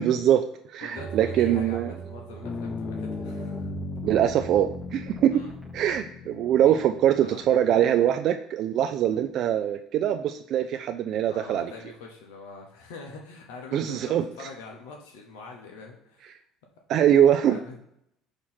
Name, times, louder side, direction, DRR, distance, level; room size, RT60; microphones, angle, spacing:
voice 1, 0.0-1.9 4.0-5.3 5.7-11.7 13.7-14.5 16.9-17.6, right 10 dB, 60° right, 6 dB, 0.3 m, -23 dB
voice 2, 0.8-3.7 5.3-5.5 6.7-6.8 7.2-7.4 11.3-14.0 14.3-16.4 17.4-17.8, left 4 dB, 80° left, 1 dB, 0.9 m, -43 dB
sound 1, 1.0-6.0, right 7 dB, 10° right, 0.9 m, -39 dB
sound 2, 2.4-8.2, left 6 dB, 40° left, 0.3 m, -38 dB
6.4 x 2.9 x 5.7 m, 0.77 s
supercardioid pair, 85°, 0 cm